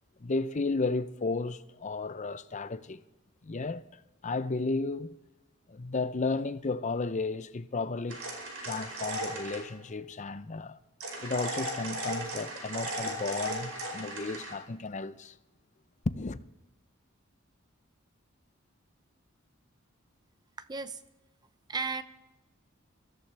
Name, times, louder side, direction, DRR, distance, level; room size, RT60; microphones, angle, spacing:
voice 1, 0.2-3.0 3.4-3.8 4.2-5.2 5.7-8.2 8.6-10.8 11.2-15.3 16.1-16.4, left 3 dB, 35° left, 0.6 m, -33 dB
sound 1, 8.1-9.7 11.0-14.5, right 1 dB, 85° right, 4.9 m, -36 dB
voice 2, 20.6-21.0 21.7-22.0, right 4 dB, 20° right, 0.7 m, -34 dB
23.5 x 14.5 x 3.4 m
head